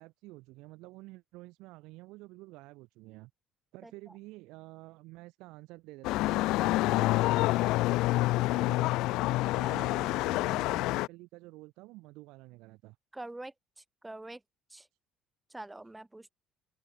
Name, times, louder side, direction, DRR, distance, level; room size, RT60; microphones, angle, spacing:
voice 1, 0.0-3.3 3.7-7.3 8.5-9.1 9.6-13.0, right 21 dB, 80° right, 2.4 m, -50 dB
sound 1, 6.0-11.1, left 19 dB, 75° left, 0.8 m, -27 dB
voice 2, 9.6-9.9 13.1-14.4 14.7-14.9 15.5-16.3, right 2 dB, 5° right, 7.5 m, -45 dB
open air
cardioid pair, 155°, 0 cm